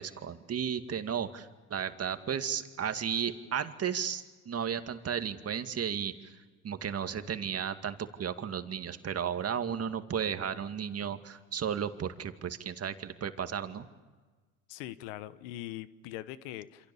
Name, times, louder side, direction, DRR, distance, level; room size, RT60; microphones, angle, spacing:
voice 1, 0.0-6.3 6.6-13.9, right 8 dB, 40° right, 8 dB, 2.2 m, -34 dB
voice 2, 14.7-16.9, left 14 dB, 75° left, 15 dB, 1.2 m, -42 dB
28.0 x 27.0 x 7.2 m, 1.3 s
hypercardioid pair, 70°, 39 cm